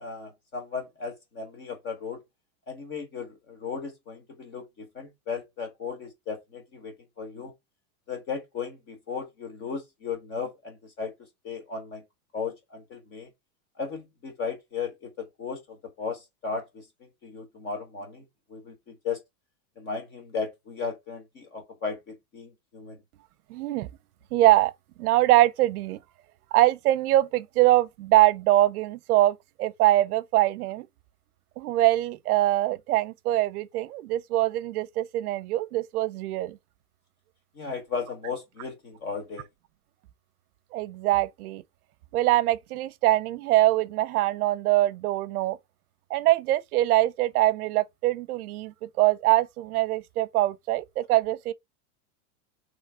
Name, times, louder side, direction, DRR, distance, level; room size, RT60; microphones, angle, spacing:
voice 1, 0.0-2.2 2.7-7.5 8.1-11.1 11.4-12.0 12.3-13.3 13.8-18.2 18.5-19.2 19.8-23.0 37.5-39.4, left 5 dB, 25° left, 1.4 m, -36 dB
voice 2, 23.5-23.9 24.3-24.7 25.0-26.0 26.5-30.9 31.6-36.6 40.7-41.6 42.1-45.6 46.1-51.5, right 15 dB, 80° right, 0.6 m, -23 dB
3.4 x 3.2 x 4.7 m
supercardioid pair, 175°, 44 cm